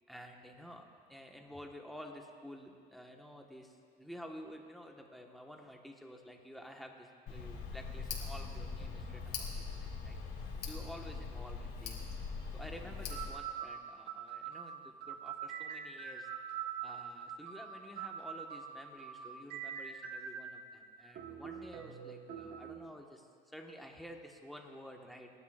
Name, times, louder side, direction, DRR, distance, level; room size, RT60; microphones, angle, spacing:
voice 1, 0.1-10.2 10.7-12.0 12.5-16.3 16.8-25.3, equal, ahead, 1 dB, 1.5 m, -51 dB
Tick, 7.3-13.3, left 5 dB, 75° left, 3.3 m, -42 dB
sound 1, 12.4-12.5 13.1-20.6 21.1-22.8, right 8 dB, 75° right, 1.4 m, -44 dB
28.5 x 12.0 x 2.6 m, 2.2 s
cardioid pair, 110°, 17 cm